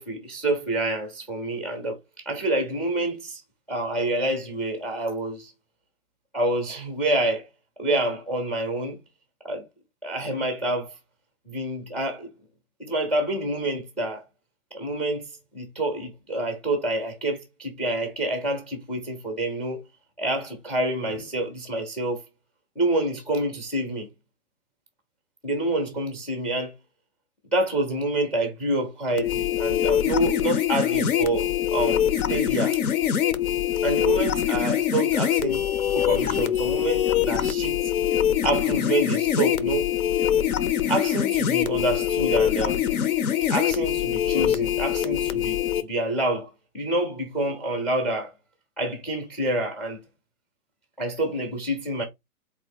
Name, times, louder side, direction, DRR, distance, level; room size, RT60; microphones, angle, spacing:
voice 1, 0.0-3.4 3.7-5.5 6.3-7.5 7.8-9.0 9.4-9.6 10.0-10.9 11.5-12.3 12.8-14.2 14.7-19.8 20.2-22.2 22.8-24.1 25.4-26.7 27.5-32.8 33.8-35.6 35.9-37.8 38.4-39.9 40.9-42.8 43.5-46.5 46.7-48.3 48.8-50.0 51.0-52.0, right 1 dB, ahead, 0.4 m, -27 dB
sound 1, 29.2-45.8, left 10 dB, 70° left, 0.8 m, -24 dB
4.0 x 2.9 x 4.0 m
hypercardioid pair, 125°, 44 cm